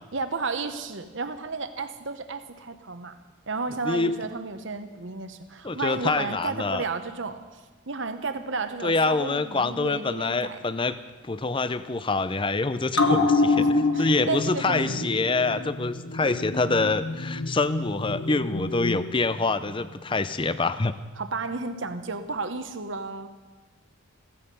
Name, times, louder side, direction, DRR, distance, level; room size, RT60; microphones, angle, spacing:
voice 1, 0.1-3.2 3.5-7.4 7.9-10.6 13.6-15.1 21.2-23.3, right 4 dB, 60° right, 9 dB, 1.0 m, -32 dB
voice 2, 3.8-4.2 5.6-6.8 8.8-11.0 11.2-13.6 14.0-20.9, left 3 dB, 25° left, 13 dB, 0.5 m, -26 dB
sound 1, 12.9-19.9 20.2-20.3, left 3 dB, 70° left, 1.4 m, -27 dB
15.5 x 15.5 x 5.5 m, 1.3 s
head